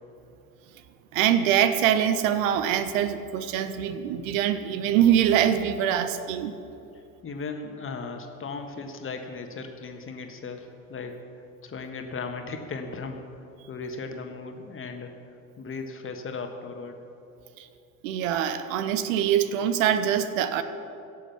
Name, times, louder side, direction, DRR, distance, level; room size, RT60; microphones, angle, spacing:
voice 1, 1.1-6.5 17.6-17.7 18.0-20.6, right 9 dB, 65° right, 11 dB, 0.8 m, -24 dB
voice 2, 7.2-11.2 11.6-13.2 13.7-15.1 15.6-16.9, left 4 dB, 30° left, 5 dB, 1.4 m, -36 dB
16.5 x 6.5 x 5.9 m, 2.7 s
figure-of-eight pair, 65°, 43 cm